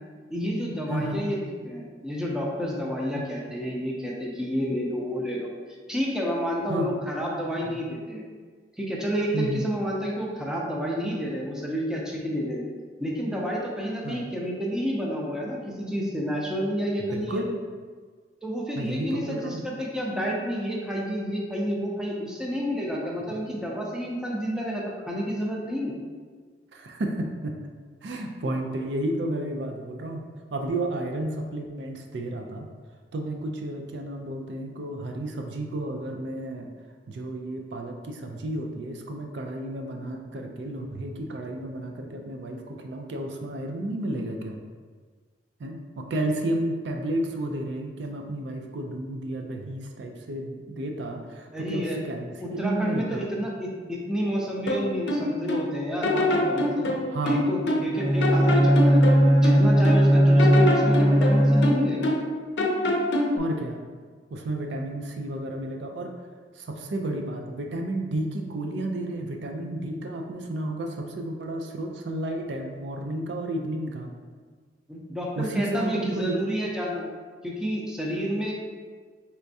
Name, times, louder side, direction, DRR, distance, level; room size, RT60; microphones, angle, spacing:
voice 1, 0.3-5.5 5.9-8.2 8.8-12.6 13.0-17.4 18.4-25.9 51.5-52.0 52.4-56.9 57.3-59.0 59.4-62.1 74.9-77.1 77.4-78.5, equal, 5° right, -3 dB, 0.6 m, -30 dB
voice 2, 0.9-1.2 3.2-3.3 6.7-6.9 7.7-7.8 9.3-9.6 14.0-14.2 17.1-17.5 18.8-19.7 26.7-27.6 28.0-30.2 30.5-32.7 33.1-36.7 37.1-44.6 45.6-53.3 57.1-57.4 63.3-63.8 64.3-66.1 66.5-74.1 75.4-76.5, right 1 dB, 75° right, 3 dB, 0.4 m, -32 dB
sound 1, 54.7-55.7 56.0-57.9 58.2-60.0 60.4-62.3 62.6-63.4, left 1 dB, 80° left, 0.5 m, -25 dB
Bowed string instrument, 57.9-62.2, equal, 40° right, 0.9 m, -19 dB
4.3 x 3.4 x 2.7 m, 1.5 s
head